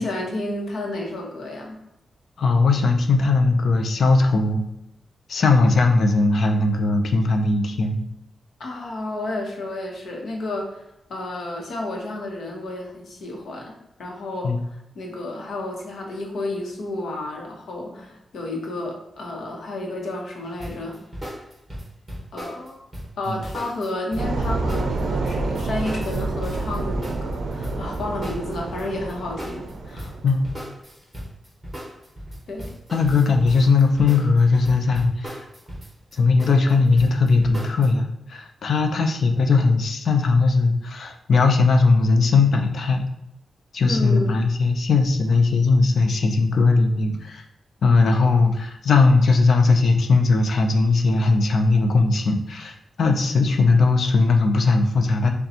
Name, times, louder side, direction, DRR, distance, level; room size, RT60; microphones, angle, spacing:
voice 1, 0.0-1.8 8.6-10.8 11.1-21.0 22.3-22.8 23.2-30.1 32.5-32.7 43.8-44.3, left 2 dB, 75° left, 0 dB, 0.9 m, -31 dB
voice 2, 2.4-4.6 5.3-8.0 14.4-14.6 23.3-23.4 30.2-30.4 32.9-35.4 36.1-43.1 43.7-47.5 47.8-55.3, left 3 dB, 60° left, 5 dB, 0.5 m, -19 dB
sound 1, 20.6-29.1 29.4-37.9, equal, 5° right, 1.3 m, -37 dB
sound 2, 24.2-30.5, right 3 dB, 70° right, 0.5 m, -28 dB
6.6 x 2.3 x 2.8 m, 0.87 s
wide cardioid pair, 150°, 0 cm